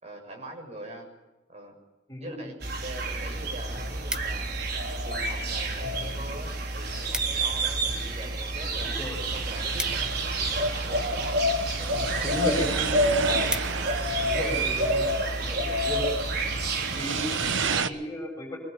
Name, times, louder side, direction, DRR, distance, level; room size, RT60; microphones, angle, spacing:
voice 1, 0.0-1.1 1.5-1.8 2.2-4.5 5.0-9.0 9.3-11.4 11.8-12.5 12.9-13.0 13.7-15.9 16.4-16.6, right 1 dB, 35° right, 3 dB, 7.2 m, -43 dB
voice 2, 2.1-2.5 7.5-7.7 8.8-9.2 12.2-12.9 14.2-15.1 15.8-16.0 16.8-18.6, equal, 15° left, 1 dB, 7.4 m, -34 dB
sound 1, 2.6-17.8, right 1 dB, 55° right, 3.8 m, -28 dB
sound 2, 4.1-4.7 5.4-5.9 6.2-6.3 6.6-6.7 6.9-7.5 7.9-10.7 11.5-11.8 12.3-12.4 12.7-12.8 13.1-14.1 14.6-14.8, right 1 dB, 5° right, 1.4 m, -38 dB
sound 3, 9.1-17.9, right 5 dB, 90° right, 1.2 m, -33 dB
24.5 x 23.0 x 9.4 m, 1.1 s
head